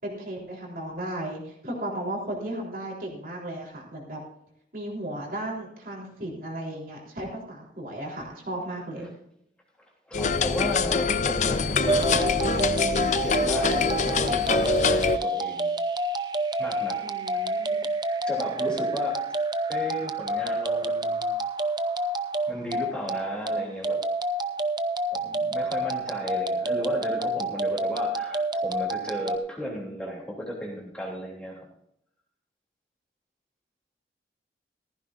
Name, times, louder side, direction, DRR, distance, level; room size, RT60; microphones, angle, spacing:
voice 1, 0.0-4.2 4.7-9.1 17.0-17.8, right 1 dB, 50° right, -2 dB, 3.7 m, -35 dB
sound 1, 10.1-15.2, left 5 dB, 40° left, 0.6 m, -24 dB
voice 2, 10.1-12.7 13.2-15.7 16.6-17.0 18.1-19.3 19.7-21.3 22.5-24.0 25.1-31.6, equal, 5° left, -3 dB, 3.0 m, -34 dB
sound 2, 11.9-29.4, right 1 dB, 25° right, 0.6 m, -28 dB
15.0 x 15.0 x 2.5 m, 0.75 s
head